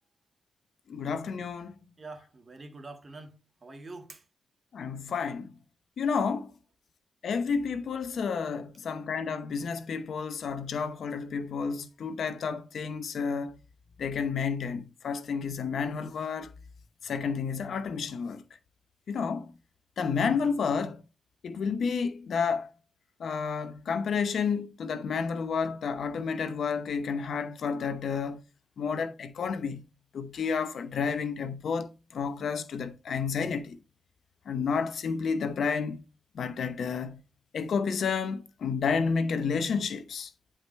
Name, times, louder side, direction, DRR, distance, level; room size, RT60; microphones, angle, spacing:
voice 1, 0.9-1.7 4.7-5.5 6.0-6.5 7.2-13.6 14.0-16.5 17.0-18.4 19.1-19.5 20.0-21.0 21.4-22.7 23.2-28.4 28.8-29.8 30.1-33.8 34.5-36.0 36.3-37.2 37.5-40.3, left 5 dB, 75° left, 0.8 m, -30 dB
voice 2, 2.0-4.2, right 3 dB, 40° right, 1.7 m, -45 dB
9.6 x 4.9 x 3.2 m
cardioid pair, 80°, 0 cm